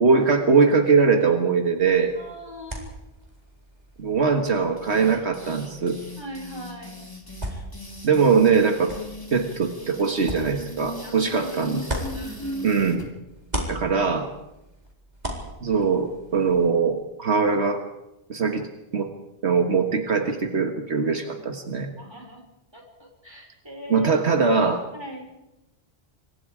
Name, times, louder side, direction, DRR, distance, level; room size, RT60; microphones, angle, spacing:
voice 1, 0.0-2.1 4.0-6.0 8.0-8.9 9.3-11.8 12.6-13.0 13.7-14.3 15.6-17.8 18.3-18.7 18.9-19.1 19.4-21.9 23.9-24.8, right 5 dB, 80° right, 5 dB, 1.9 m, -21 dB
sound 1, 1.8-13.0 13.3-16.7, equal, 40° right, 4.3 m, -38 dB
voice 2, 2.1-2.8 6.2-7.0 11.0-12.7 21.1-21.4 22.0-22.4 22.7-24.1 24.9-25.3, left 1 dB, 25° right, 1 dB, 5.6 m, -40 dB
sound 2, 4.8-13.1, left 1 dB, 20° left, 3.0 m, -38 dB
27.0 x 23.0 x 5.0 m, 0.94 s
omnidirectional pair, 1.1 m